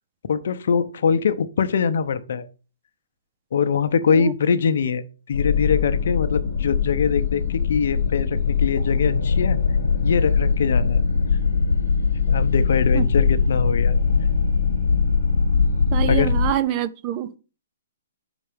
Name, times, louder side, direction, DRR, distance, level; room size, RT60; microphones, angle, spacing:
voice 1, 0.3-2.5 3.5-9.6 10.0-11.0 12.3-14.0 16.1-16.3, left 6 dB, 65° left, 0.7 m, -23 dB
sound 1, 5.3-16.5, left 5 dB, 85° left, 1.1 m, -21 dB
voice 2, 15.9-17.3, right 12 dB, 30° right, 0.4 m, -25 dB
5.6 x 4.0 x 5.0 m
hypercardioid pair, 150°, 0 cm